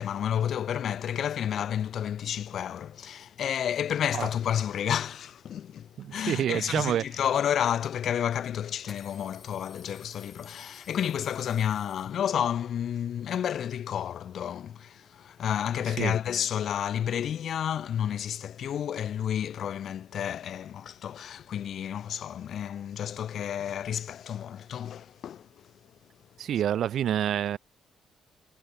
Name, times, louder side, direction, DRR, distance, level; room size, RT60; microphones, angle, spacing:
voice 1, 0.0-25.7, left 9 dB, 55° left, 0.5 m, -31 dB
voice 2, 6.0-7.0 16.0-16.1 26.4-27.6, right 10 dB, 60° right, 0.3 m, -27 dB
sound 1, 8.9-12.6, left 4 dB, 25° left, 5.5 m, -54 dB
cardioid pair, 155°, 0 cm